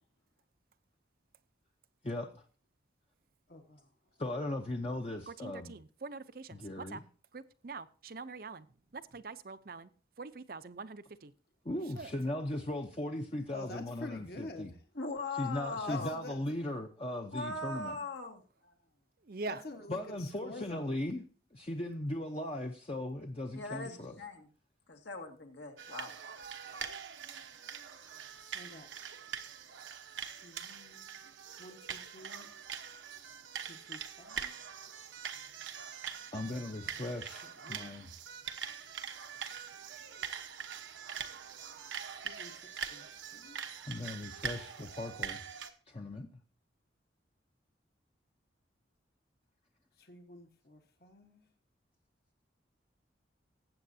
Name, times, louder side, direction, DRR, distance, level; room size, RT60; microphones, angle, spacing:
voice 1, 2.0-2.4 4.2-5.7 6.5-7.0 11.6-14.7 15.4-18.0 19.9-21.2 21.5-24.1 36.3-38.1 43.9-45.4 45.9-46.4, left 1 dB, 30° left, 0.7 m, -38 dB
voice 2, 3.5-4.2 13.5-14.9 15.9-16.4 19.5-21.0 23.8-24.1 28.0-28.9 30.4-31.2 31.6-32.5 33.6-34.7 36.5-37.0 37.6-37.9 42.1-43.6 49.9-51.5, left 2 dB, 55° left, 1.3 m, -49 dB
voice 3, 5.3-7.0 7.3-8.7 8.9-9.9 10.2-11.3 11.7-12.1 19.2-19.6, right 3 dB, 50° right, 0.6 m, -44 dB
voice 4, 15.0-16.1 17.3-18.7 23.5-24.5 24.9-26.1, left 2 dB, 75° left, 2.1 m, -40 dB
sound 1, 25.8-45.7, right 7 dB, 85° right, 1.0 m, -43 dB
19.5 x 8.4 x 2.7 m
head